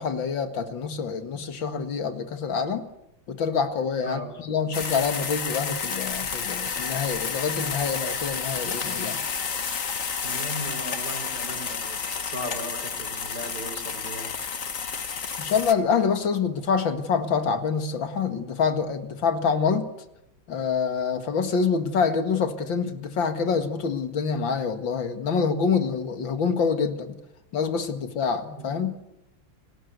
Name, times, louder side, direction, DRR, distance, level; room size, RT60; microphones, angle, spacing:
voice 1, 0.0-2.9 3.3-9.2 15.4-19.9 20.5-27.2 27.5-29.0, left 5 dB, 70° left, 9 dB, 2.5 m, -26 dB
voice 2, 4.0-4.4 10.2-14.3 28.6-28.7, equal, 55° right, 7 dB, 5.0 m, -37 dB
sound 1, 4.7-15.7, left 6 dB, 45° left, 1.8 m, -31 dB
29.5 x 19.5 x 8.1 m, 0.86 s
omnidirectional pair, 2.1 m